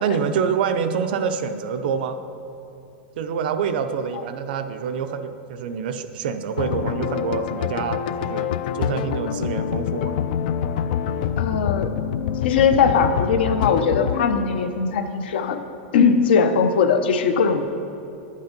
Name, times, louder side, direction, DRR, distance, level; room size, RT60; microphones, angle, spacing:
voice 1, 0.0-2.2 3.2-8.5 8.7-10.1, right 7 dB, 60° right, 8 dB, 0.7 m, -26 dB
sound 1, 6.6-14.6, left 9 dB, 55° left, 0.4 m, -26 dB
voice 2, 11.4-11.9 12.4-15.6 15.9-17.7, left 6 dB, 75° left, 8 dB, 0.9 m, -20 dB
11.0 x 8.5 x 5.3 m, 2.8 s
supercardioid pair, 175°, 6 cm